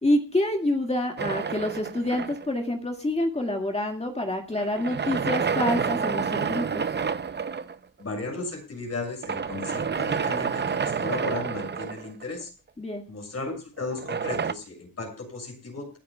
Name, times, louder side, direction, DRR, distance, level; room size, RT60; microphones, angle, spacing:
voice 1, 0.0-6.9 12.8-13.0, left 1 dB, 20° left, 2 dB, 2.1 m, -27 dB
sound 1, 1.2-2.7 4.6-7.8 9.2-12.4 13.9-14.5, right 6 dB, 30° right, 0.7 m, -29 dB
voice 2, 8.0-12.5 13.1-16.0, left 3 dB, 50° left, 2 dB, 6.6 m, -35 dB
30.0 x 10.0 x 2.3 m, 0.29 s
cardioid pair, 95°, 33 cm